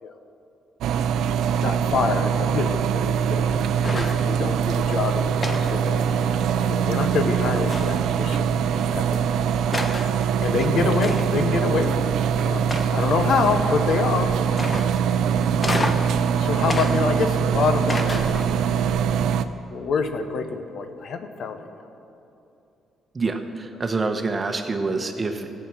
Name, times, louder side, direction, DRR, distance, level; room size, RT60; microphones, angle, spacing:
sound 1, 0.8-19.4, right 7 dB, 80° right, 0.5 m, -23 dB
voice 1, 1.6-3.5 3.9-6.0 6.6-9.6 10.4-14.4 15.6-16.0 16.4-18.4 19.7-21.6, left 5 dB, 65° left, 7 dB, 1.0 m, -26 dB
sound 2, 3.8-4.3 5.4-6.5 7.7-8.2 9.1-9.2 9.7-10.2 11.0-11.5 12.7-13.2 14.6-15.1 15.6-16.2 16.7-17.5 17.9-18.6, left 2 dB, 25° left, 1.1 m, -30 dB
voice 2, 23.1-25.5, right 3 dB, 30° right, 6 dB, 1.1 m, -26 dB
16.0 x 8.6 x 6.2 m, 2.8 s
cardioid pair, 90°, 0 cm